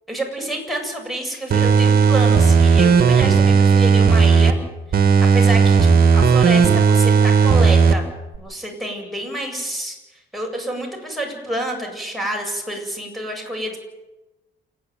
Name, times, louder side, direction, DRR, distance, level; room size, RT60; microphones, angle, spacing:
voice 1, 0.1-4.6 4.9-8.0 8.4-13.8, right 1 dB, ahead, 0 dB, 8.0 m, -28 dB
sound 1, 1.5-4.5 4.9-7.9 8.3-8.4, right 5 dB, 50° right, 2.2 m, -14 dB
29.0 x 10.5 x 9.6 m, 1.0 s
cardioid pair, 90°, 20 cm